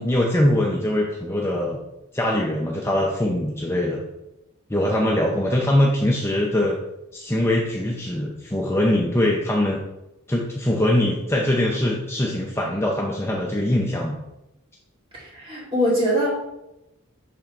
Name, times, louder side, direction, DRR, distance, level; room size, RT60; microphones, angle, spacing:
voice 1, 0.0-1.8 2.1-4.0 4.7-6.8 7.1-9.8 10.3-14.2, left 1 dB, 10° left, -1 dB, 0.5 m, -22 dB
voice 2, 15.1-16.3, equal, 25° right, -6 dB, 2.2 m, -22 dB
5.9 x 3.8 x 4.3 m, 0.93 s
head